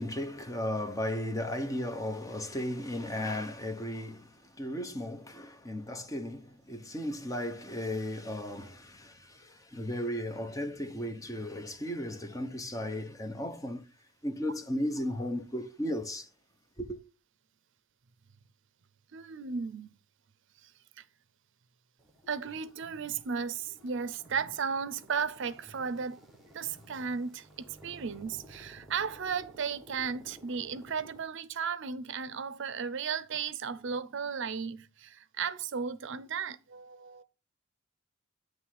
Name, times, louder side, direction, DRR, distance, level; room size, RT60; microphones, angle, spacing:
voice 1, 0.0-13.8 14.2-16.3 16.8-17.0, left 1 dB, 15° left, 0.8 m, -35 dB
voice 2, 19.1-19.9 20.6-20.7 21.0-21.1 22.3-26.2 26.5-37.2, right 6 dB, 60° right, 0.5 m, -35 dB
sound 1, 22.0-31.2, equal, ahead, 1.5 m, -55 dB
9.5 x 3.2 x 6.3 m
head